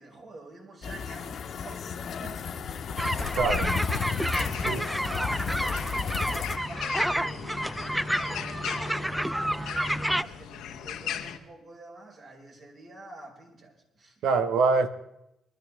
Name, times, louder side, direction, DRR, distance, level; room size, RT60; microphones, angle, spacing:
voice 1, 0.0-2.5 3.5-4.0 4.3-7.5 8.2-14.2, right 2 dB, 50° right, -1 dB, 5.3 m, -47 dB
sound 1, 0.8-6.6, left 6 dB, 60° left, 1.4 m, -33 dB
sound 2, 3.0-11.4, left 9 dB, 90° left, 1.3 m, -39 dB
sound 3, 3.0-10.2, equal, 5° right, 0.4 m, -30 dB
voice 2, 3.4-3.8 4.6-4.9 14.2-14.9, right 4 dB, 80° right, 9 dB, 1.4 m, -24 dB
23.0 x 13.0 x 3.6 m, 0.81 s
cardioid pair, 90°, 0 cm